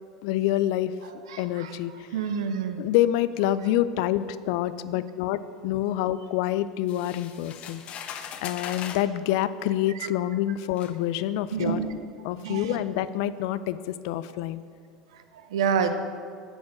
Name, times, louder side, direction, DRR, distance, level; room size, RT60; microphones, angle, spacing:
voice 1, 0.2-0.9 1.4-2.1 2.8-7.8 8.4-11.8 12.2-14.6, left 13 dB, 60° left, 15 dB, 0.4 m, -27 dB
voice 2, 1.3-1.8 2.1-2.8 11.5-11.9 12.4-12.8 15.1-15.9, right 7 dB, 70° right, 8 dB, 0.8 m, -28 dB
sound 1, 6.9-9.1 10.1-10.2 10.8-11.0, left 8 dB, 45° left, 0.8 m, -39 dB
9.0 x 7.3 x 6.1 m, 2.3 s
figure-of-eight pair, 75°, 3 cm